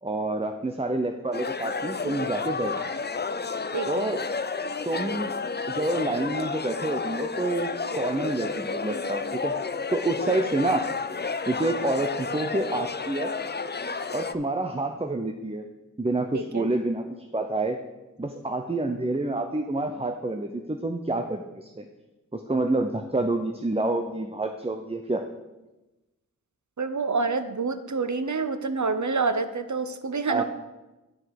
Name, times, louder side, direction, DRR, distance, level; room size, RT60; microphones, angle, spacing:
voice 1, 0.0-2.8 3.9-4.2 4.9-5.4 5.7-9.5 9.9-10.9 11.5-13.3 14.1-15.6 16.0-17.0 17.3-17.8 18.2-21.9 22.3-25.2 30.3-30.4, right 2 dB, 20° right, 5 dB, 0.6 m, -28 dB
sound 1, 1.3-14.3, left 4 dB, 30° left, 0.4 m, -31 dB
voice 2, 3.7-4.1 16.3-16.7 26.8-30.4, right 4 dB, 60° right, 11 dB, 0.7 m, -27 dB
9.7 x 5.2 x 5.9 m, 1.1 s
wide cardioid pair, 45°, 33 cm